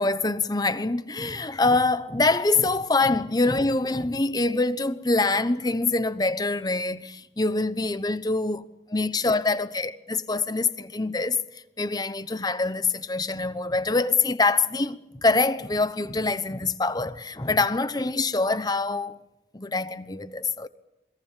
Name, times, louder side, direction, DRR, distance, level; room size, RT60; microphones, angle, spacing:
voice 1, 0.0-8.6 8.9-9.9 10.3-19.2 19.5-20.7, left 3 dB, 25° left, 1.0 m, -25 dB
27.5 x 21.5 x 7.5 m
head